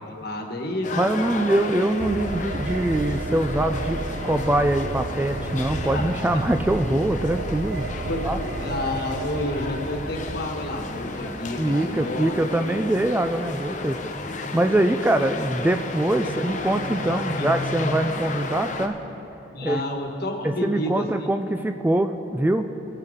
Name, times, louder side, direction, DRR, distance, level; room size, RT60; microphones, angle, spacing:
voice 1, 0.0-1.0 5.8-6.4 8.0-8.2 8.6-12.3 16.2-16.3 17.1-17.5 19.4-21.1, left 1 dB, 60° left, 2 dB, 1.4 m, -30 dB
sound 1, 0.8-18.9, left 3 dB, 40° left, 0.8 m, -33 dB
voice 2, 0.9-7.9 8.2-8.4 11.6-14.0 14.5-19.0 19.6-19.8 20.4-22.7, right 1 dB, 10° right, 7 dB, 0.3 m, -23 dB
sound 2, 2.0-13.8 14.1-14.2, right 3 dB, 55° right, 0.6 m, -33 dB
20.0 x 9.0 x 3.7 m, 3.0 s
head